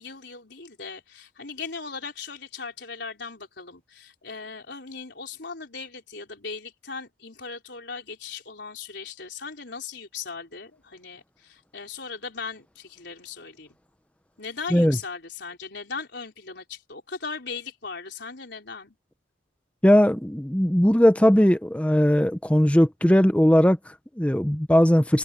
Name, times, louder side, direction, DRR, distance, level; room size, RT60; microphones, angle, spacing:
voice 1, 0.0-13.8 14.4-19.0, left 5 dB, 60° left, 4.5 m, -38 dB
voice 2, 19.8-25.2, equal, 5° left, 0.7 m, -19 dB
head